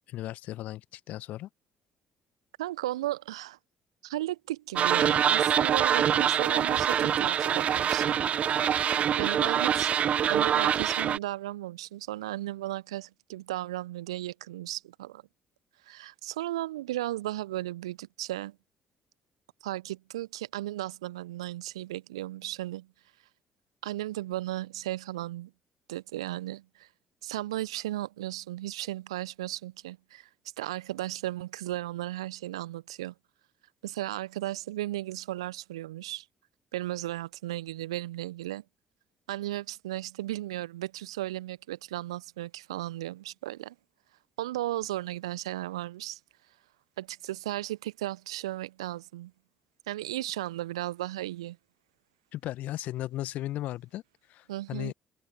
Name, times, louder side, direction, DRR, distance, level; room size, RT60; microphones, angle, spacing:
voice 1, 0.1-1.5 52.3-54.0 54.3-54.9, left 14 dB, 60° left, 1.5 m, -36 dB
voice 2, 2.6-3.6 4.0-8.2 9.2-9.9 10.3-15.2 15.9-18.6 19.6-22.9 23.8-25.5 25.9-26.9 27.2-30.3 30.6-33.1 33.8-36.2 36.7-38.6 39.3-43.7 44.4-46.2 47.0-49.3 49.9-51.6 54.5-54.9, right 15 dB, 75° right, 1.0 m, -35 dB
sound 1, 4.8-11.2, right 9 dB, 45° right, 0.7 m, -25 dB
figure-of-eight pair, 45°, 3 cm